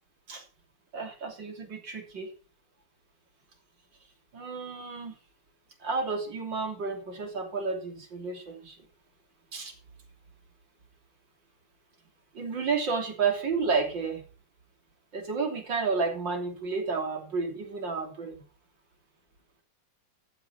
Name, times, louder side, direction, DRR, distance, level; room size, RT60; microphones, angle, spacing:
voice 1, 0.9-2.3 4.3-5.1 5.8-8.8 9.5-9.7 12.3-14.2 15.1-18.4, right 4 dB, 85° right, 3 dB, 3.9 m, -31 dB
14.0 x 9.1 x 5.8 m, 0.36 s
omnidirectional pair, 2.0 m